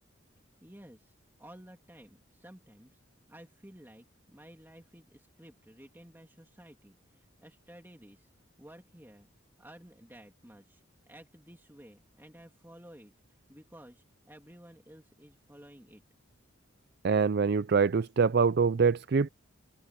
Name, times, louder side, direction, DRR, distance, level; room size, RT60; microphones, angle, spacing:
voice 1, 0.6-3.0 3.3-8.3 8.6-9.3 9.6-16.0, right 1 dB, 10° right, 2.8 m, -54 dB
voice 2, 17.0-19.3, right 5 dB, 50° right, 0.4 m, -24 dB
head